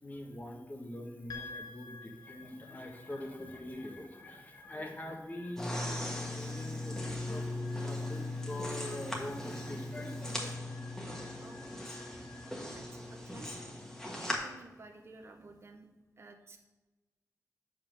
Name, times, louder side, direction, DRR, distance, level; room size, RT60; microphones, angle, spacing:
voice 1, 0.0-7.5 7.8-10.5, left 1 dB, 25° left, 3 dB, 1.2 m, -44 dB
sound 1, 1.3-15.7, left 4 dB, 85° left, 0.9 m, -54 dB
sound 2, 5.6-14.4, left 1 dB, 10° left, 1.4 m, -38 dB
voice 2, 11.1-12.0 12.7-13.6 14.2-15.9 16.2-16.6, right 3 dB, 45° right, 4 dB, 0.8 m, -54 dB
7.1 x 5.2 x 6.1 m, 1.1 s
wide cardioid pair, 125°, 6 cm